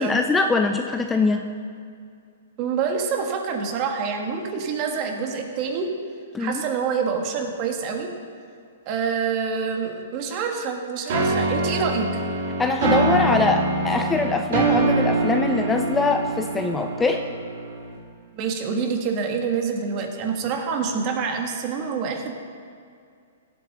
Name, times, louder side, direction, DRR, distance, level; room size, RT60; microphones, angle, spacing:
voice 1, 0.0-1.4 6.3-6.6 12.6-17.2, left 3 dB, 10° left, 5 dB, 0.5 m, -23 dB
voice 2, 2.6-5.9 6.4-8.1 8.9-12.1 18.3-22.3, right 5 dB, 35° right, 3 dB, 1.7 m, -26 dB
sound 1, 11.1-17.9, right 2 dB, 60° right, 3.2 m, -24 dB
17.0 x 8.1 x 4.2 m, 2.3 s
hypercardioid pair, 145°, 0 cm